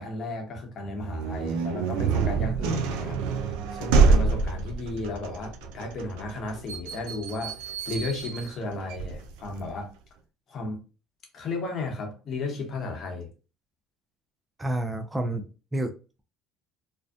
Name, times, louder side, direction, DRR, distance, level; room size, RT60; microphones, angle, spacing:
voice 1, 0.0-9.9 10.5-10.8 11.3-13.3, left 2 dB, 45° left, 0.9 m, -34 dB
sound 1, 1.0-9.7, right 4 dB, 85° right, 0.3 m, -26 dB
voice 2, 14.6-15.9, right 1 dB, 10° right, 0.4 m, -29 dB
2.5 x 2.1 x 2.3 m
supercardioid pair, 105°, 0 cm